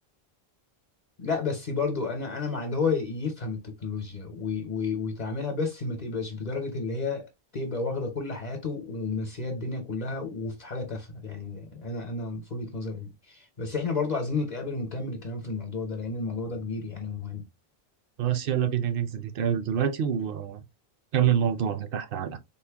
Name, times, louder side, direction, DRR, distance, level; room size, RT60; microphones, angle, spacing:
voice 1, 1.2-17.5, left 4 dB, 45° left, 0.9 m, -31 dB
voice 2, 18.2-20.6 21.1-22.4, right 9 dB, 65° right, 0.7 m, -26 dB
3.9 x 2.1 x 3.4 m
omnidirectional pair, 1.1 m